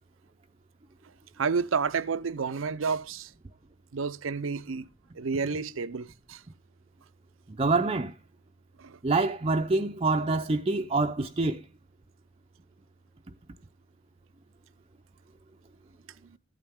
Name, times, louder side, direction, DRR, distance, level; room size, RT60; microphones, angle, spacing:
voice 1, 1.4-3.3 3.9-4.9 5.2-6.4 8.8-9.0, right 5 dB, 80° right, 0.6 m, -30 dB
voice 2, 7.5-8.1 9.0-11.6, right 3 dB, 30° right, 0.6 m, -26 dB
14.0 x 8.8 x 3.5 m
head